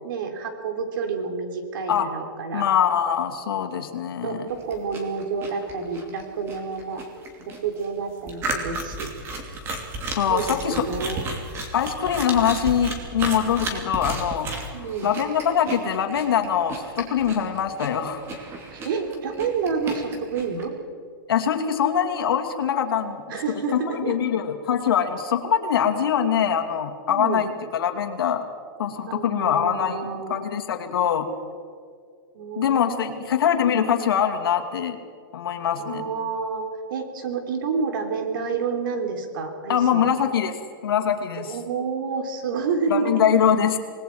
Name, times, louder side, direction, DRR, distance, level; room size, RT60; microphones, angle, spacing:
voice 1, 0.0-2.7 4.2-7.0 7.4-9.1 10.2-11.2 14.7-15.1 18.7-20.7 23.3-24.2 27.1-27.4 29.1-30.4 32.3-33.3 35.8-40.1 41.4-43.1, right 5 dB, 65° right, 5 dB, 3.6 m, -29 dB
voice 2, 2.5-4.4 10.1-10.8 11.7-14.5 15.0-18.2 21.3-23.2 23.7-28.4 28.8-31.3 32.6-35.0 35.3-36.0 39.7-40.5 40.8-41.5 42.9-43.8, left 8 dB, 85° left, 5 dB, 2.5 m, -23 dB
sound 1, 4.5-20.6, right 2 dB, 20° right, 2.9 m, -34 dB
27.5 x 20.0 x 4.7 m, 2.2 s
supercardioid pair, 160°, 12 cm